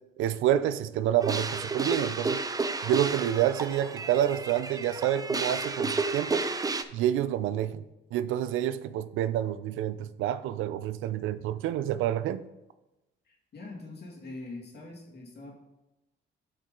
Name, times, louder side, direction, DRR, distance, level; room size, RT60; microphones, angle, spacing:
voice 1, 0.2-2.4 2.8-6.4 6.9-7.8 8.1-12.4, right 11 dB, 90° right, 0.4 m, -28 dB
sound 1, 1.2-6.8, right 3 dB, 20° right, 0.5 m, -31 dB
voice 2, 13.3-15.5, left 2 dB, 55° left, 2.3 m, -43 dB
8.5 x 5.4 x 3.8 m
cardioid pair, 90°, 20 cm